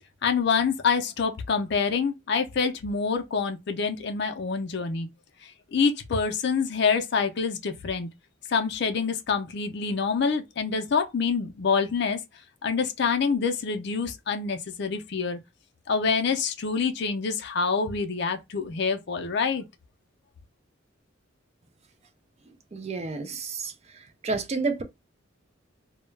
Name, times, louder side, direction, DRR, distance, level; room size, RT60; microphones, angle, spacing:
voice 1, 0.2-5.1 5.4-8.1 8.5-12.2 12.6-15.4 15.9-19.6, left 5 dB, 60° left, 0.5 m, -26 dB
voice 2, 22.7-23.7 24.2-24.8, right 4 dB, 35° right, 0.4 m, -29 dB
2.2 x 2.1 x 3.1 m
head